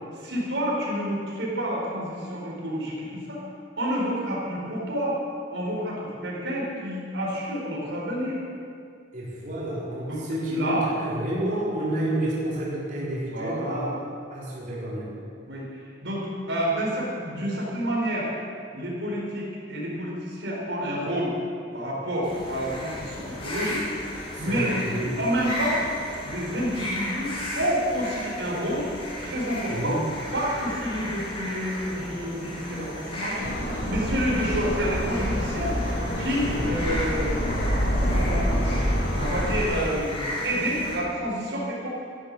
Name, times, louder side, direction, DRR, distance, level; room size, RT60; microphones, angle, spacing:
voice 1, 0.1-3.4 3.8-5.2 5.5-8.4 10.1-10.2 10.5-10.9 13.3-14.0 15.5-18.3 18.7-21.3 21.7-23.8 24.4-24.7 25.2-25.8 26.2-28.9 29.2-30.0 30.3-38.8 39.2-41.9, equal, 80° right, -5 dB, 4.4 m, -29 dB
voice 2, 9.1-13.9 14.3-15.1 24.3-25.2 29.7-30.1 36.4-36.7, right 1 dB, 45° right, -7 dB, 4.3 m, -30 dB
sound 1, 22.2-41.0, left 1 dB, 30° left, 2.7 m, -35 dB
sound 2, 33.4-39.6, equal, 65° left, 3.6 m, -26 dB
14.0 x 12.0 x 7.7 m, 2.4 s
head